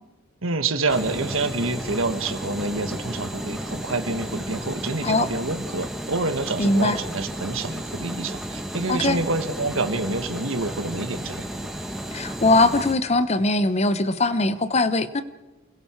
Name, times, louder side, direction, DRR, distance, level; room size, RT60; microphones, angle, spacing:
voice 1, 0.4-11.7, right 3 dB, 75° right, 9 dB, 1.6 m, -27 dB
sound 1, 0.9-12.9, right 1 dB, ahead, 1.7 m, -33 dB
voice 2, 6.6-7.0 8.9-9.2 12.1-15.2, left 2 dB, 30° left, 12 dB, 0.8 m, -21 dB
28.5 x 21.0 x 4.6 m, 1.2 s
head